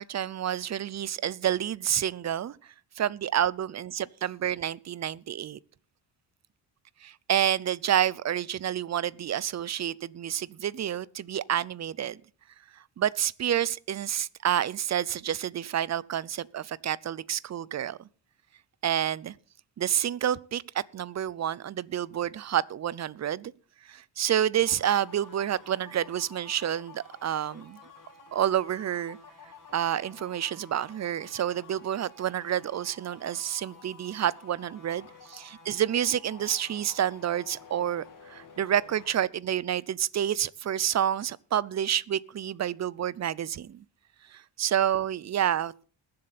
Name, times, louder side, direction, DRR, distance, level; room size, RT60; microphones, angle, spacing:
voice 1, 0.0-2.6 3.0-5.6 7.0-12.2 13.0-18.0 18.8-19.3 19.8-23.5 23.9-27.8 28.3-29.2 29.7-43.8 44.3-45.8, right 10 dB, 40° right, 0.6 m, -29 dB
sound 1, 24.5-39.2, left 4 dB, 45° left, 2.6 m, -51 dB
21.0 x 7.7 x 4.2 m
cardioid pair, 105°, 43 cm